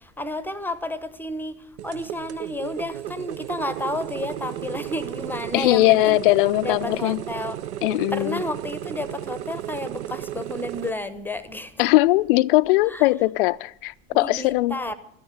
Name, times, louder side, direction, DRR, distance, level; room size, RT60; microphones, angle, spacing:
voice 1, 0.0-6.2 6.6-7.6 8.1-11.9 12.9-13.1 14.1-15.0, left 1 dB, 5° left, 0.9 m, -31 dB
sound 1, 1.8-10.9, right 11 dB, 60° right, 0.7 m, -34 dB
voice 2, 5.5-7.2 7.8-8.4 11.8-14.8, left 19 dB, 45° left, 0.5 m, -20 dB
13.5 x 10.5 x 8.9 m
figure-of-eight pair, 85°, 38 cm